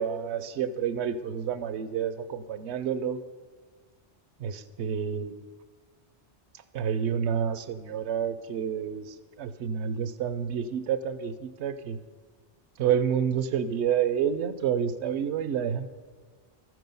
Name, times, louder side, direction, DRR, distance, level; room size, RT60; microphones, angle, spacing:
voice 1, 0.0-3.2 4.4-5.3 6.7-12.0 12.8-15.9, right 8 dB, 75° right, 12 dB, 0.9 m, -29 dB
14.5 x 6.2 x 5.4 m, 1.5 s
omnidirectional pair, 1.2 m